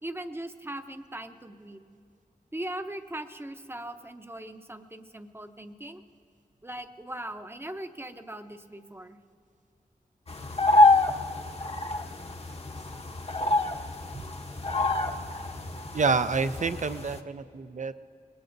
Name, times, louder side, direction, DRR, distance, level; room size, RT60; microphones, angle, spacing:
voice 1, 0.0-1.8 2.5-6.0 6.6-9.2, right 1 dB, 15° right, 8 dB, 0.7 m, -39 dB
sound 1, 10.3-17.2, left 2 dB, 40° left, 0.9 m, -26 dB
voice 2, 15.9-17.9, right 4 dB, 55° right, 11 dB, 0.6 m, -28 dB
26.0 x 20.5 x 2.7 m, 2.5 s
wide cardioid pair, 95°, 15 cm